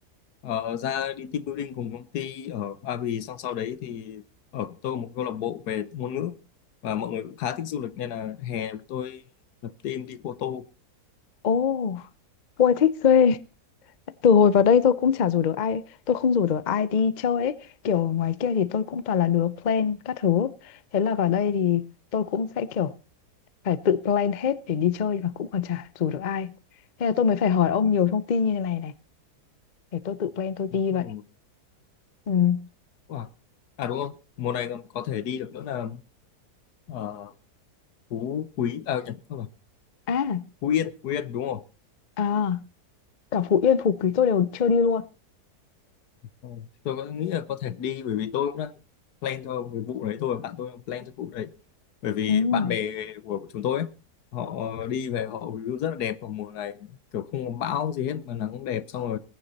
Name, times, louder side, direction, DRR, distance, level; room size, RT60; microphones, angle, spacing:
voice 1, 0.4-4.2 4.5-6.3 6.8-9.2 9.6-10.6 30.7-31.2 33.1-33.3 33.8-36.0 36.9-37.3 38.1-39.5 40.6-41.6 46.4-48.7 49.2-51.5 52.0-53.9 54.3-59.2, left 9 dB, 75° left, 1.4 m, -31 dB
voice 2, 11.4-12.0 12.6-13.4 14.2-15.8 16.1-17.6 17.8-21.9 22.1-22.9 23.6-26.5 27.0-28.9 29.9-31.1 32.3-32.7 40.1-40.4 42.2-42.7 43.3-45.0 52.3-52.8, left 7 dB, 55° left, 0.5 m, -23 dB
20.0 x 9.8 x 4.1 m
omnidirectional pair, 1.7 m